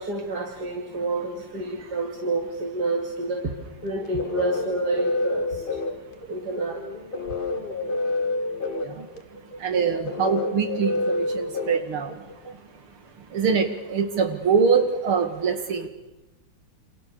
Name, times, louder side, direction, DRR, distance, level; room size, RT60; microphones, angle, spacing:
voice 1, 0.0-3.5 3.8-5.6 6.3-6.8, right 2 dB, 50° right, 1 dB, 2.9 m, -28 dB
sound 1, 3.8-12.5, left 2 dB, 25° left, 1.7 m, -29 dB
voice 2, 8.8-9.1 9.6-12.6 13.2-15.9, right 6 dB, 85° right, 7 dB, 3.0 m, -24 dB
28.5 x 26.5 x 6.9 m, 1.1 s
omnidirectional pair, 2.3 m